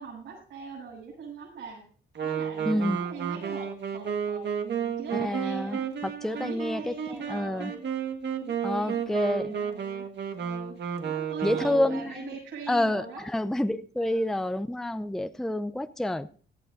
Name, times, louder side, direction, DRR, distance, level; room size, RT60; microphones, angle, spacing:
voice 1, 0.0-1.8 2.2-5.8 6.2-7.8 8.4-10.1 10.4-10.8 11.0-13.3 14.0-14.4, right 5 dB, 75° right, -6 dB, 7.7 m, -42 dB
Wind instrument woodwind instrument, 2.2-12.1, right 8 dB, 60° right, 1.7 m, -32 dB
voice 2, 2.7-3.0 5.1-7.7 8.6-9.6 11.4-12.3 12.7-16.3, left 1 dB, ahead, 10 dB, 0.6 m, -29 dB
17.5 x 12.0 x 2.6 m, 0.43 s
cardioid pair, 90°, 20 cm